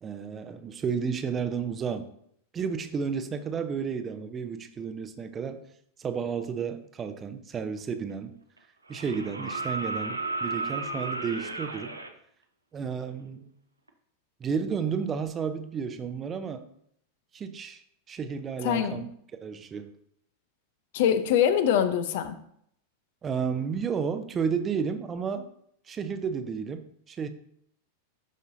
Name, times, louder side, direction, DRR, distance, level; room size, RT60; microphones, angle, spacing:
voice 1, 0.0-2.1 2.5-5.6 6.0-8.3 8.9-11.9 12.7-13.5 14.4-16.6 17.3-19.1 19.4-19.9 23.2-25.5 25.9-27.3, right 6 dB, 25° right, 9 dB, 0.7 m, -32 dB
sound 1, 7.8-7.9 8.9-12.1 13.9-14.0, right 3 dB, 80° right, 0.7 m, -33 dB
voice 2, 18.6-19.0 20.9-22.4, left 9 dB, 50° left, 11 dB, 0.6 m, -24 dB
11.5 x 5.3 x 2.7 m, 0.67 s
figure-of-eight pair, 90°, 0 cm